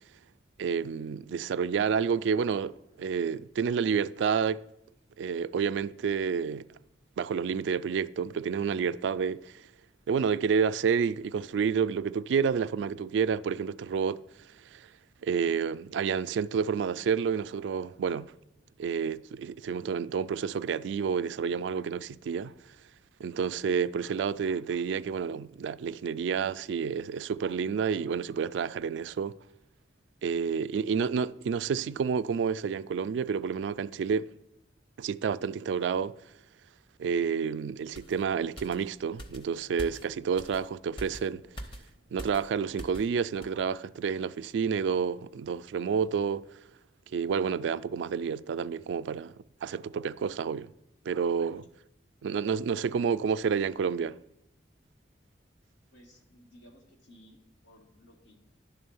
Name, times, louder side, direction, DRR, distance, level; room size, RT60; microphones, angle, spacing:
voice 1, 0.6-4.6 5.2-6.7 7.2-9.5 10.1-14.2 14.7-14.9 15.2-18.3 18.8-22.5 23.2-29.3 30.2-34.3 35.0-36.1 37.0-41.4 42.1-46.4 47.1-49.3 49.6-50.7 51.1-51.7 52.2-54.2, right 6 dB, 85° right, 0.3 m, -29 dB
sound 1, 37.9-43.1 43.4-43.6, equal, 30° left, 0.7 m, -45 dB
voice 2, 55.9-57.4 57.6-58.4, equal, 90° left, 1.7 m, -57 dB
11.0 x 3.7 x 7.0 m
head